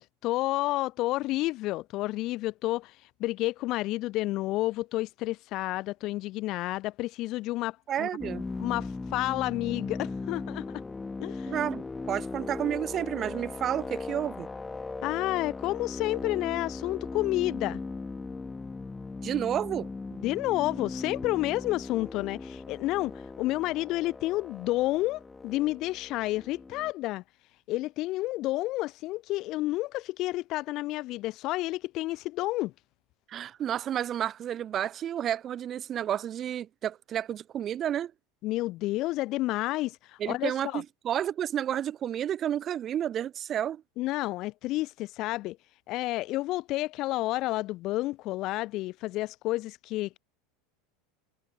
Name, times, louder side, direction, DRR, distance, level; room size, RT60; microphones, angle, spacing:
voice 1, 0.0-2.9 3.2-8.1 8.6-10.8 11.2-11.5 15.0-17.8 20.2-27.2 27.7-32.7 38.4-40.8 44.0-45.6 45.9-50.2, left 18 dB, 55° left, 1.0 m, -30 dB
voice 2, 7.9-8.4 11.5-14.5 19.2-19.9 33.3-38.1 40.2-43.8, right 10 dB, 35° right, 1.3 m, -31 dB
sound 1, 8.2-26.9, left 3 dB, 15° left, 1.3 m, -38 dB
supercardioid pair, 110°, 0 cm